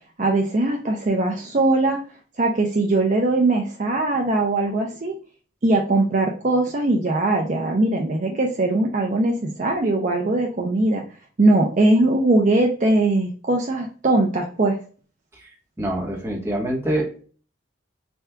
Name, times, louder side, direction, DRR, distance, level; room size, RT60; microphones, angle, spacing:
voice 1, 0.2-2.0 2.4-5.1 5.6-11.0 11.4-14.8, right 2 dB, 40° right, 1 dB, 0.5 m, -20 dB
voice 2, 15.8-17.2, right 1 dB, 15° right, -1 dB, 1.0 m, -25 dB
3.5 x 2.3 x 4.3 m, 0.39 s
head